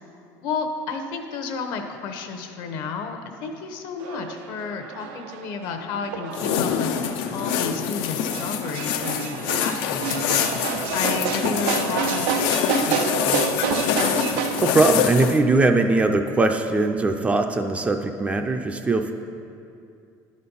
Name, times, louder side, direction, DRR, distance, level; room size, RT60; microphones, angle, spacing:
voice 1, 0.4-6.9 7.3-10.6 10.9-13.6, left 5 dB, 65° left, 5 dB, 0.8 m, -32 dB
sound 1, 4.0-14.6, right 8 dB, 90° right, 0.4 m, -29 dB
sound 2, 6.3-15.4, left 8 dB, 85° left, 0.5 m, -25 dB
voice 2, 14.6-19.1, right 3 dB, 15° right, 5 dB, 0.3 m, -20 dB
10.5 x 4.2 x 5.4 m, 2.5 s
cardioid pair, 145°, 8 cm